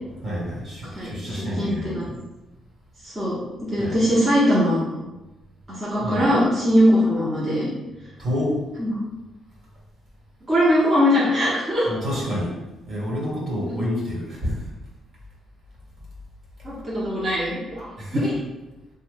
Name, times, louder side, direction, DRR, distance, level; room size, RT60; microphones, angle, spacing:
voice 1, 0.2-2.2 3.8-4.0 6.0-6.3 8.2-8.6 11.8-12.6 12.9-14.6 18.0-18.3, equal, 55° right, -5 dB, 1.4 m, -28 dB
voice 2, 0.9-2.0 3.0-3.4 3.7-5.0 5.7-7.7 8.8-9.0 10.5-11.9 13.7-13.8 16.6-18.3, equal, 25° right, -9 dB, 1.0 m, -21 dB
3.0 x 2.2 x 3.4 m, 1.1 s
cardioid pair, 90°, 0 cm